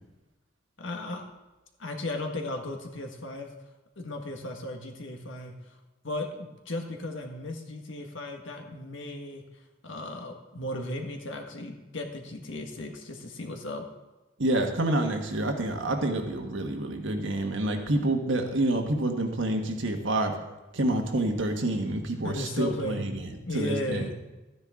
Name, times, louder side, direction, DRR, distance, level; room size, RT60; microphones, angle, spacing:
voice 1, 0.8-1.3 1.8-3.5 4.0-5.5 6.0-9.4 9.8-13.8 22.2-23.1 23.5-24.1, left 1 dB, 70° left, 3 dB, 1.6 m, -35 dB
voice 2, 14.4-20.3 20.7-24.1, right 1 dB, 70° right, 3 dB, 1.5 m, -28 dB
13.5 x 9.9 x 3.7 m, 1.1 s
head